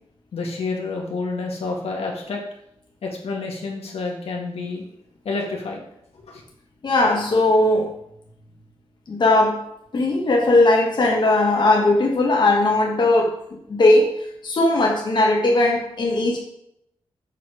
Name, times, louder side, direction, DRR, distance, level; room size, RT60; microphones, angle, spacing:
voice 1, 0.3-2.4 3.0-4.8 5.3-5.9 6.3-6.4, left 3 dB, 85° left, 0 dB, 1.9 m, -29 dB
voice 2, 6.8-7.9 9.1-9.6 9.9-13.4 13.7-14.1 14.4-16.4, left 2 dB, 50° left, 0 dB, 1.3 m, -18 dB
7.1 x 6.7 x 4.9 m, 0.76 s
wide cardioid pair, 165°, 10 cm